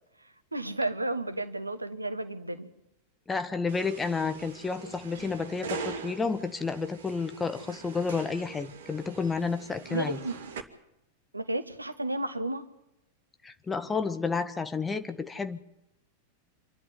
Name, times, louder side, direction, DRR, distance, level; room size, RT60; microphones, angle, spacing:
voice 1, 0.5-2.7 9.9-10.3 11.3-12.6, right 2 dB, 85° right, 12 dB, 1.6 m, -32 dB
voice 2, 3.3-10.2 13.4-15.6, left 4 dB, 15° left, 10 dB, 1.6 m, -31 dB
sound 1, 3.7-10.6, right 5 dB, 60° right, 2.4 m, -42 dB
27.0 x 12.0 x 9.6 m, 0.86 s
figure-of-eight pair, 90°, 0 cm